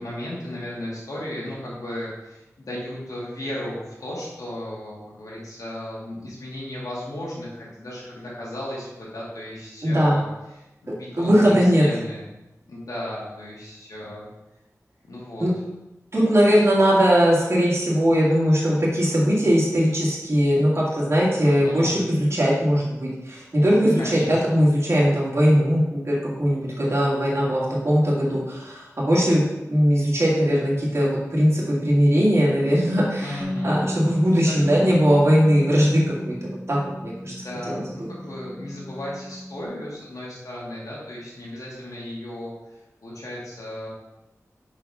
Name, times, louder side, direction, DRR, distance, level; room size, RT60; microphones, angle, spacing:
voice 1, 0.0-10.2 10.5-12.3 12.7-14.3 15.0-15.5 21.4-22.0 24.0-24.6 33.2-33.9 34.4-34.9 37.3-42.5 43.0-43.9, left 1 dB, 85° left, -6 dB, 2.3 m, -35 dB
voice 2, 9.8-10.2 11.2-11.9 15.4-15.5 16.1-29.4 29.7-37.3 37.7-38.1, equal, 50° right, -6 dB, 2.2 m, -20 dB
Bass guitar, 33.4-39.7, equal, 5° right, 0.6 m, -34 dB
5.5 x 4.9 x 5.6 m, 0.99 s
wide cardioid pair, 70°, 6 cm